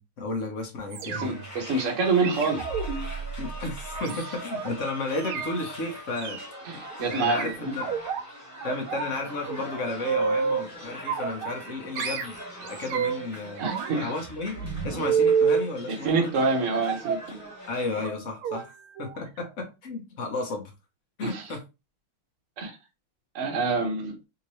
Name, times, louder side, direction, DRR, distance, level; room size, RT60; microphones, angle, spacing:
voice 1, 0.0-1.4 3.4-6.4 7.1-7.9 8.6-12.4 12.6-13.6 13.9-14.5 14.8-16.2 17.7-18.7 19.0-20.7 21.2-21.6, left 2 dB, 50° left, 1.0 m, -33 dB
sound 1, 0.9-1.5 2.2-4.7 5.1-5.5 6.2-6.5 7.1-8.2 8.6-9.1 9.4-10.7 11.1-11.7 12.0-13.3 13.6-15.7 16.8-17.3 18.0-18.1 18.4-18.6 19.0-19.2 19.5-19.6, right 6 dB, 85° right, 1.5 m, -29 dB
sound 2, 1.0-18.1, equal, 15° right, 0.7 m, -42 dB
voice 2, 1.1-2.6 6.6-7.8 13.6-14.1 15.9-17.5 21.2-21.4 22.6-22.7 23.3-24.1, right 3 dB, 45° right, 1.1 m, -27 dB
3.7 x 2.8 x 3.0 m
omnidirectional pair, 2.3 m